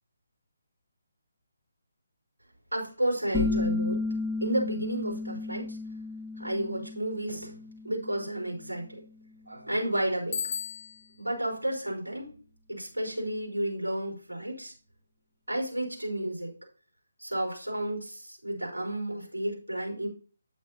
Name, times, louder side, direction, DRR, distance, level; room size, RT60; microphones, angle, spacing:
voice 1, 2.7-4.0 4.4-5.8 6.4-7.6 7.8-9.0 9.5-10.4 11.2-12.3 12.7-14.7 15.5-16.5 17.2-20.1, right 1 dB, 90° right, 3.9 m, -32 dB
sound 1, 3.3-8.7, left 3 dB, 5° right, 1.9 m, -33 dB
Bicycle bell, 10.3-11.3, left 7 dB, 40° left, 0.6 m, -35 dB
9.2 x 8.1 x 2.7 m
figure-of-eight pair, 145°, 0 cm